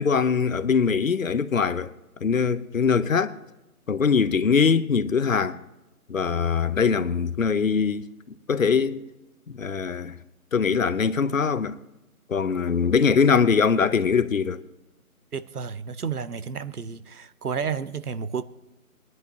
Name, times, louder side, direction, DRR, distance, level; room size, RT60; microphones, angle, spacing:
voice 1, 0.0-1.9 2.2-3.3 3.9-5.6 6.1-8.1 8.5-9.1 9.5-10.2 10.5-11.8 12.3-14.6, left 6 dB, 60° left, 0.7 m, -22 dB
voice 2, 15.3-18.4, right 6 dB, 85° right, 0.9 m, -31 dB
22.0 x 11.0 x 2.8 m
figure-of-eight pair, 165°, 45 cm